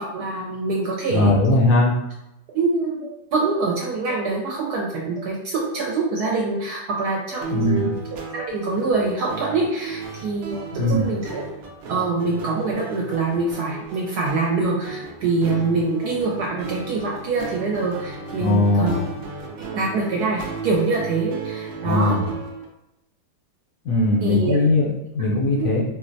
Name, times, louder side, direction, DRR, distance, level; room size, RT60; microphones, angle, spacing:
voice 1, 0.0-1.3 2.5-2.9 3.3-7.9 8.3-11.4 11.9-19.0 19.6-22.2 24.2-24.6 25.6-25.7, right 3 dB, 75° right, -3 dB, 1.1 m, -24 dB
voice 2, 1.1-1.9 7.5-7.9 10.8-11.0 18.4-19.0 21.8-22.3 23.8-25.8, left 2 dB, 70° left, -4 dB, 0.8 m, -19 dB
sound 1, 3.0-3.2 4.1-4.2 5.1-5.3 6.2-6.4 7.3-7.4 8.4-8.5 9.4-9.6 10.5-10.7, right 6 dB, 85° left, 0.4 m, -40 dB
sound 2, 7.4-22.6, right 5 dB, 90° right, 0.6 m, -35 dB
4.3 x 2.0 x 2.6 m, 0.88 s
omnidirectional pair, 1.9 m